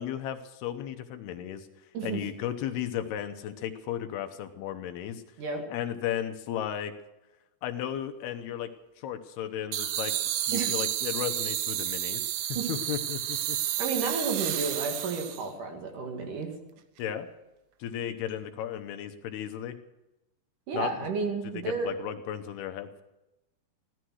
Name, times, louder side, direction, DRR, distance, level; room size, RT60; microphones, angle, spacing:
voice 1, 0.0-1.7 2.0-5.2 5.7-6.9 7.6-8.7 9.0-12.3 12.7-13.6 17.0-17.3 17.8-19.8 20.7-20.9 21.4-23.0, left 10 dB, 75° left, 8 dB, 2.9 m, -35 dB
sound 1, 9.7-15.5, right 12 dB, 75° right, 2.7 m, -31 dB
voice 2, 13.8-16.5 20.7-21.9, right 4 dB, 55° right, 3 dB, 3.3 m, -32 dB
16.0 x 13.5 x 6.3 m, 0.96 s
omnidirectional pair, 4.8 m